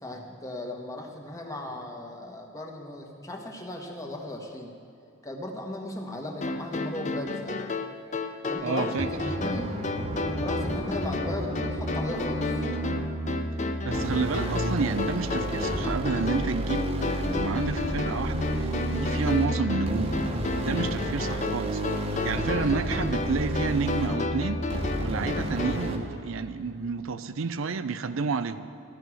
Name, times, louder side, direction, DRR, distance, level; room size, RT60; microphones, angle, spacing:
voice 1, 0.0-4.7 5.2-7.6 8.4-9.7 10.3-12.7 22.5-22.8, left 1 dB, 15° left, 1 dB, 1.5 m, -37 dB
sound 1, 6.4-25.9, left 3 dB, 35° left, 0.6 m, -33 dB
voice 2, 8.6-9.1 13.8-20.2 20.6-21.8 22.2-28.7, right 4 dB, 70° right, 11 dB, 0.5 m, -30 dB
sound 2, 9.0-26.0, right 1 dB, 30° right, 1.2 m, -31 dB
15.0 x 12.5 x 6.2 m, 2.7 s
head